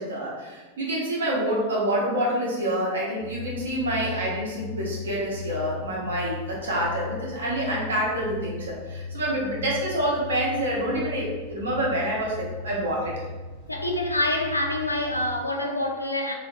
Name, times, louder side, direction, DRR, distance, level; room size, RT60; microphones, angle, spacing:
voice 1, 0.0-13.2, right 1 dB, 70° right, 0.7 m, -27 dB
sound 1, 3.2-15.3, left 4 dB, 30° right, 0.8 m, -38 dB
voice 2, 13.7-16.3, left 1 dB, 85° left, 0.3 m, -26 dB
2.6 x 2.2 x 2.5 m
figure-of-eight pair, 90°, 0 cm